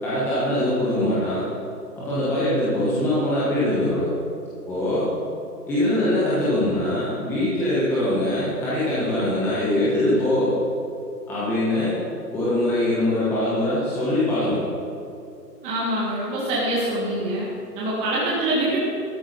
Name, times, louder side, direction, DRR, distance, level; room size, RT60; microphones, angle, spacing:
voice 1, 0.0-1.5 2.0-4.1 4.7-5.1 5.7-10.6 11.3-11.9 12.3-14.6, left 1 dB, 5° left, -10 dB, 1.0 m, -22 dB
voice 2, 15.6-17.5 17.7-18.8, right 1 dB, 15° right, -6 dB, 1.7 m, -24 dB
13.0 x 8.8 x 5.5 m, 2.5 s
hypercardioid pair, 150°, 49 cm